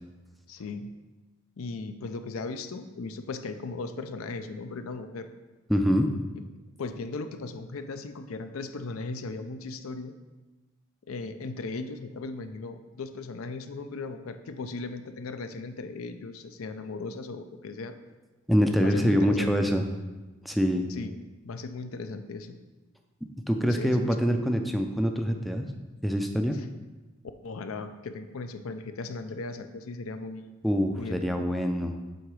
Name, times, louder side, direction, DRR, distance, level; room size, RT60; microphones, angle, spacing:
voice 1, 0.5-0.9 1.6-5.3 6.4-6.5 6.8-10.1 11.1-18.0 18.8-19.7 20.9-21.2 21.4-22.6 23.6-24.2 26.5-26.7 27.4-30.6 31.0-31.5, left 3 dB, 80° left, 9 dB, 0.5 m, -37 dB
voice 2, 5.7-6.1 18.5-19.8 20.5-20.9 23.5-25.7 26.0-26.6 30.6-31.9, equal, ahead, 4 dB, 0.3 m, -25 dB
7.8 x 3.7 x 4.7 m, 1.2 s
head